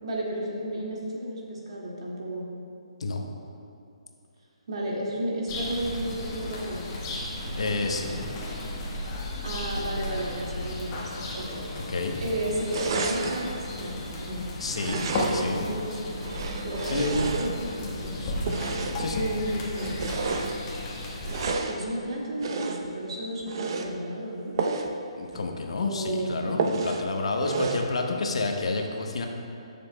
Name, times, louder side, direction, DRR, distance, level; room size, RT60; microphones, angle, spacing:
voice 1, 0.0-2.5 4.7-6.9 9.4-11.7 12.2-14.5 14.8-16.0 16.6-18.2 19.1-20.0 21.7-24.6 25.8-26.5, right 1 dB, 65° right, -3 dB, 2.0 m, -32 dB
sound 1, 5.5-21.5, left 1 dB, 25° left, 1.2 m, -34 dB
voice 2, 7.6-8.2 11.7-12.1 14.6-15.6 16.8-17.2 18.2-18.3 19.0-19.2 25.2-29.3, left 3 dB, 70° left, 3 dB, 0.8 m, -30 dB
sound 2, 12.7-13.5 14.7-15.6 16.2-17.8 18.4-19.1 19.7-20.6 21.2-21.8 22.4-22.9 23.4-23.9 24.6-24.9 25.3-25.4 25.8-25.9 26.6-27.1 27.4-27.9, right 4 dB, 45° right, 0.6 m, -31 dB
13.5 x 7.0 x 2.2 m, 2.6 s
hypercardioid pair, 150°, 3 cm